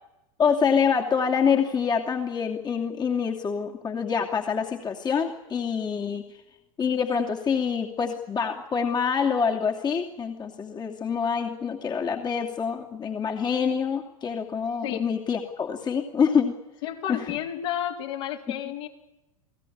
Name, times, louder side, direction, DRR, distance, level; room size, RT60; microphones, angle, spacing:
voice 1, 0.4-6.2 6.8-16.6 17.1-17.3 18.5-18.6, left 6 dB, 25° left, 1 dB, 2.7 m, -26 dB
voice 2, 16.8-18.9, left 10 dB, 50° left, 1 dB, 4.0 m, -31 dB
29.0 x 18.5 x 8.8 m, 0.98 s
figure-of-eight pair, 85°, 18 cm